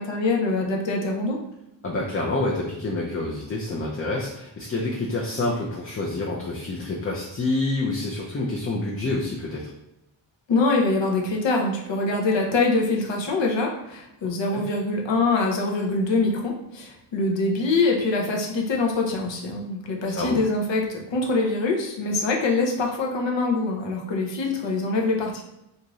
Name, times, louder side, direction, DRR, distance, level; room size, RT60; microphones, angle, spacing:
voice 1, 0.0-1.4 10.5-25.4, left 3 dB, 70° left, 1 dB, 0.8 m, -24 dB
voice 2, 1.8-9.7 14.5-14.6 20.1-20.4, left 2 dB, 30° left, -3 dB, 0.5 m, -27 dB
2.7 x 2.4 x 3.0 m, 0.87 s
cardioid pair, 65°, 46 cm